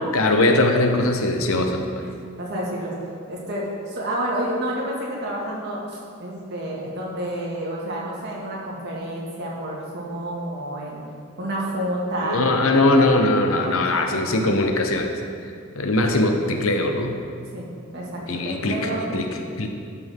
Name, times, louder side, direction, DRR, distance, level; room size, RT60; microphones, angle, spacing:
voice 1, 0.1-2.0 12.2-15.1 15.7-17.2 18.3-19.3 19.6-19.7, left 2 dB, 90° left, 4 dB, 0.9 m, -20 dB
voice 2, 2.4-2.9 3.3-11.0 11.4-13.1 13.5-14.4 16.1-16.3 17.5-19.3, right 1 dB, 55° right, -4 dB, 2.0 m, -30 dB
12.5 x 6.0 x 3.6 m, 2.3 s
head